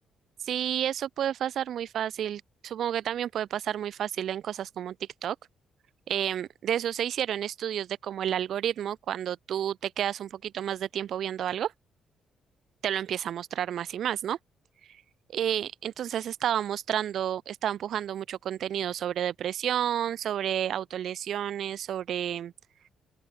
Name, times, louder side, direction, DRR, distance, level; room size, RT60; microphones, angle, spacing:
voice 1, 0.4-4.9 5.2-5.4 6.1-11.7 12.8-14.4 15.3-22.5, right 10 dB, 70° right, 2.6 m, -30 dB
open air
cardioid pair, 90°, 0 cm